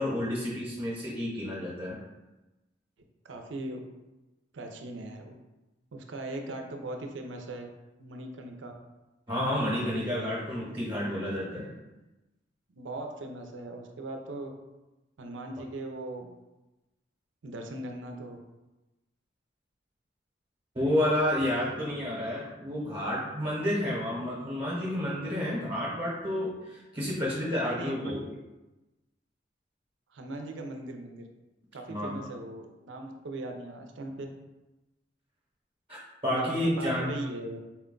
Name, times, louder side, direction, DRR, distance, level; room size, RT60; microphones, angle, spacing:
voice 1, 0.0-2.0 9.3-11.7 20.7-28.2 31.9-32.1 35.9-37.1, left 1 dB, 30° right, -6 dB, 0.9 m, -30 dB
voice 2, 3.2-3.8 4.5-5.3 5.9-7.7 8.0-8.7 12.7-14.5 15.2-16.3 17.4-18.4 27.6-28.2 30.1-31.3 31.7-34.3 36.3-37.6, right 2 dB, 85° right, 3 dB, 0.5 m, -39 dB
4.4 x 2.2 x 3.7 m, 1.0 s
head